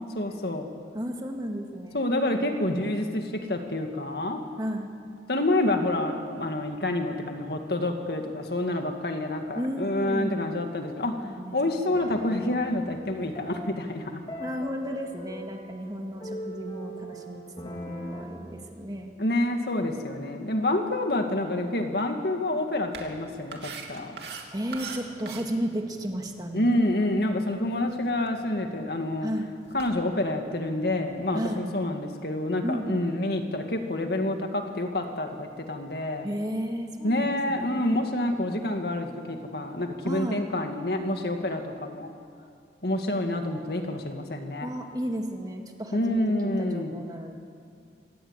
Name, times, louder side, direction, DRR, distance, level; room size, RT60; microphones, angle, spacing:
voice 1, 0.1-0.7 1.9-4.4 5.3-11.1 11.5-14.1 19.2-24.2 26.5-29.3 29.7-36.3 37.0-42.1 42.8-44.7 45.9-46.9, left 1 dB, 60° left, 4 dB, 2.2 m, -28 dB
voice 2, 0.9-2.1 4.6-4.9 9.5-10.4 11.2-11.8 14.4-19.1 24.5-26.8 29.2-29.5 31.3-31.6 32.6-33.1 36.2-38.2 40.0-40.4 44.6-47.3, equal, 20° right, 3 dB, 2.0 m, -33 dB
sound 1, 11.9-18.2, equal, 30° left, 3.4 m, -41 dB
sound 2, 22.9-31.4, right 4 dB, 70° right, 2.8 m, -45 dB
26.0 x 18.5 x 8.3 m, 2.3 s
head